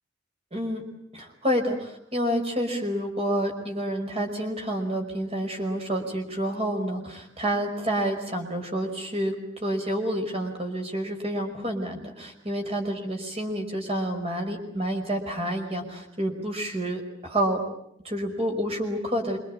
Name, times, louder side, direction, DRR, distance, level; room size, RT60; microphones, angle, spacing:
voice 1, 0.5-0.8 1.1-17.6 18.0-19.4, equal, 30° right, 3 dB, 5.3 m, -29 dB
25.5 x 25.5 x 8.7 m, 0.75 s
head